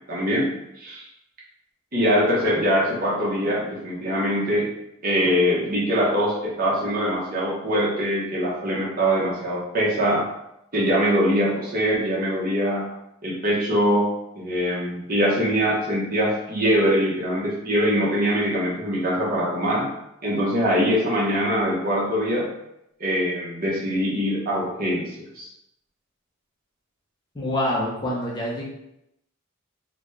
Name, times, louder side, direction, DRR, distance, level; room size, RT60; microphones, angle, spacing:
voice 1, 0.1-1.1 1.9-4.7 5.0-10.2 10.7-12.8 13.2-14.1 14.3-19.9 20.2-22.5 23.0-25.5, equal, 40° right, -5 dB, 0.9 m, -23 dB
voice 2, 27.3-28.6, left 1 dB, 20° left, -4 dB, 0.6 m, -26 dB
4.0 x 2.2 x 3.1 m, 0.83 s
head